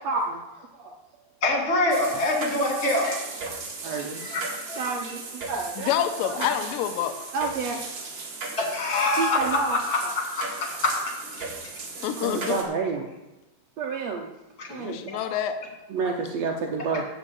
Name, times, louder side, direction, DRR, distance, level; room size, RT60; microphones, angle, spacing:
voice 1, 0.0-0.9 2.1-2.2 3.8-4.2 4.8-5.9 6.2-6.3 7.3-7.8 9.2-10.1 12.0-13.1 13.8-14.3 14.7-15.0 15.9-17.0, right 4 dB, 70° right, 2 dB, 1.6 m, -29 dB
voice 2, 1.4-3.2 4.2-4.4 4.7-4.8 8.6-10.9 11.3-11.5 14.6-14.7 15.1-15.2, left 2 dB, 30° left, 0 dB, 2.8 m, -25 dB
sound 1, 1.9-12.6, right 3 dB, 40° right, 2.2 m, -37 dB
voice 3, 5.8-7.2 12.0-12.6 14.7-15.6, left 10 dB, 85° left, 7 dB, 2.5 m, -27 dB
13.5 x 5.0 x 8.3 m, 1.0 s
omnidirectional pair, 3.9 m